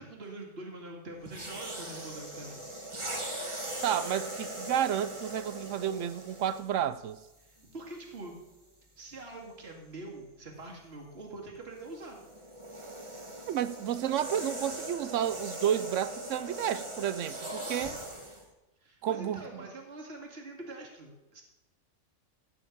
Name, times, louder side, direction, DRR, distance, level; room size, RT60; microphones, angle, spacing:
voice 1, 0.0-2.6 7.4-8.3 9.0-12.2 18.8-21.4, right 2 dB, 55° right, 2.4 m, -44 dB
sound 1, 1.2-6.8 7.6-7.8 11.8-18.4, right 1 dB, 25° right, 1.6 m, -40 dB
voice 2, 3.8-7.2 13.5-18.0 19.0-19.4, right 10 dB, 80° right, 0.9 m, -31 dB
15.0 x 5.1 x 8.3 m
omnidirectional pair, 1.3 m